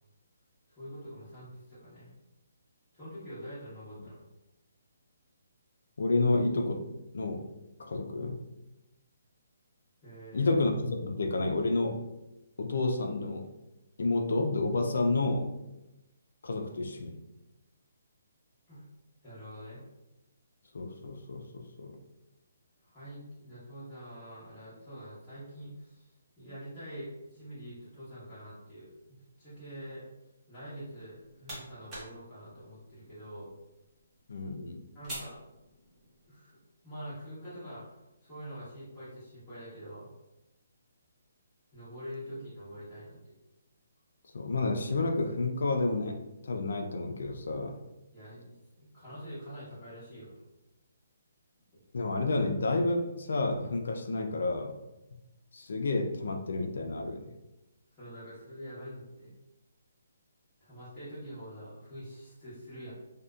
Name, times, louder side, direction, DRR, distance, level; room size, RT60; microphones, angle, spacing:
voice 1, 0.7-2.1 2.9-4.2 10.0-10.5 18.7-18.8 19.2-19.8 22.8-28.9 29.4-30.0 30.5-33.5 34.9-35.4 36.2-36.6 36.8-40.1 41.7-43.3 48.1-50.4 57.9-59.3 60.6-62.9, equal, 10° left, -15 dB, 0.9 m, -45 dB
voice 2, 6.0-7.5 7.8-8.4 10.3-12.0 12.6-13.5 14.0-15.6 16.4-17.2 20.7-21.9 34.3-34.9 44.3-46.2 46.4-47.8 51.9-54.8 55.5-57.2, left 2 dB, 70° left, 4 dB, 0.3 m, -30 dB
sound 1, 30.9-36.3, right 1 dB, 15° right, 0.8 m, -48 dB
2.6 x 2.1 x 2.3 m, 0.96 s
hypercardioid pair, 165°, 0 cm